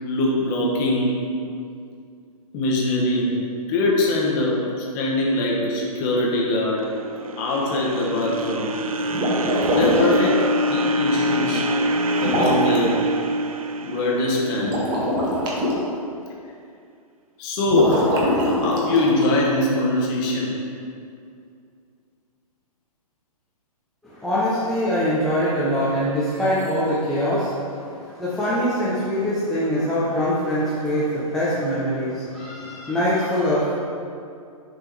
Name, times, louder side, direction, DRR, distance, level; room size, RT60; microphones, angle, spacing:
voice 1, 0.0-1.2 2.5-3.3 3.7-6.8 7.4-8.7 9.7-11.7 12.2-13.0 13.8-14.8 17.4-18.1 18.5-20.5 29.6-29.7, left 2 dB, 30° left, -3 dB, 1.1 m, -22 dB
sound 1, 6.8-15.1, equal, 70° right, 0.4 m, -25 dB
sound 2, 9.1-10.3 12.2-12.8 14.6-15.7 17.7-19.4, equal, 20° right, 1.0 m, -23 dB
voice 2, 24.0-33.7, equal, ahead, -10 dB, 0.6 m, -23 dB
6.7 x 3.5 x 4.5 m, 2.4 s
figure-of-eight pair, 120°, 19 cm